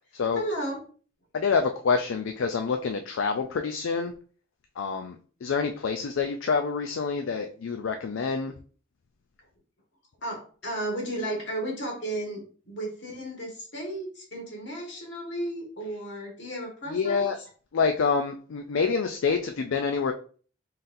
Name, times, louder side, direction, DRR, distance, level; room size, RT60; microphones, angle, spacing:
voice 1, 0.3-0.8 10.2-17.3, right 1 dB, 60° left, -1 dB, 1.6 m, -34 dB
voice 2, 1.3-4.1 4.8-5.2 5.4-8.5 16.9-17.4 17.7-20.1, left 5 dB, 75° left, 5 dB, 0.4 m, -27 dB
4.0 x 4.0 x 2.6 m, 0.41 s
head